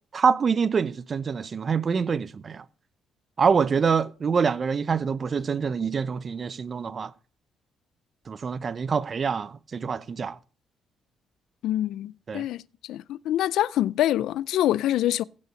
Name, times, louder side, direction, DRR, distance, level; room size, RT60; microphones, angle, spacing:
voice 1, 0.1-2.6 3.4-7.1 8.3-10.4 12.3-12.4, right 6 dB, 40° right, 0.7 m, -25 dB
voice 2, 11.6-12.6 12.9-15.2, left 13 dB, 85° left, 0.4 m, -25 dB
16.0 x 5.4 x 5.1 m
cardioid pair, 90°, 0 cm